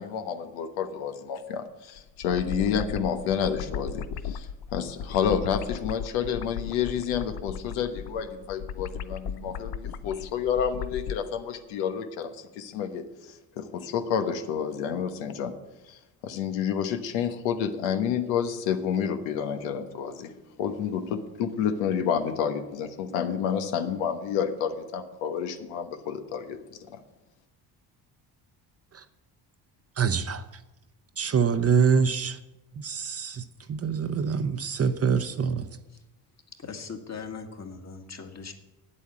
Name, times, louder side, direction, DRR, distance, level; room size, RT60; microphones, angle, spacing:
voice 1, 0.0-15.5 15.9-27.0, left 7 dB, 90° left, 1.2 m, -29 dB
sound 1, 2.0-11.2, left 7 dB, 55° left, 0.8 m, -36 dB
voice 2, 30.0-30.4 31.2-32.4 32.8-35.7, right 6 dB, 35° right, 0.8 m, -25 dB
voice 3, 36.6-38.5, left 5 dB, 35° left, 1.8 m, -39 dB
8.9 x 8.3 x 8.4 m
supercardioid pair, 80°, 45 cm